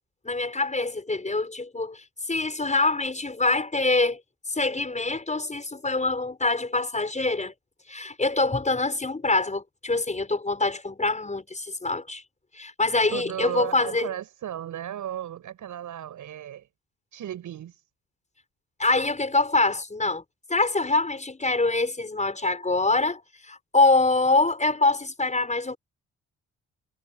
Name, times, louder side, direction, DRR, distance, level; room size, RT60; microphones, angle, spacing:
voice 1, 0.2-4.2 4.5-7.5 7.9-12.2 12.5-14.1 18.8-20.2 20.5-25.8, left 3 dB, 20° left, 6.5 m, -25 dB
voice 2, 13.1-16.7 17.1-17.8, right 11 dB, 70° right, 6.5 m, -35 dB
supercardioid pair, 60°, 32 cm